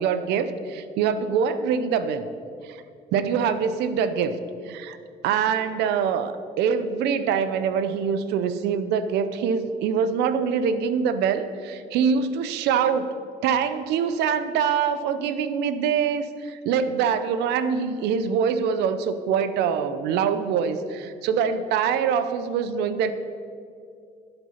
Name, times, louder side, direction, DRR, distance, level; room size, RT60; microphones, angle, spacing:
voice 1, 0.0-2.3 2.6-2.8 3.1-4.4 4.7-5.0 5.2-13.1 13.4-23.1, right 7 dB, 85° right, 12 dB, 0.7 m, -24 dB
12.0 x 8.0 x 5.7 m, 2.4 s
cardioid pair, 110°, 17 cm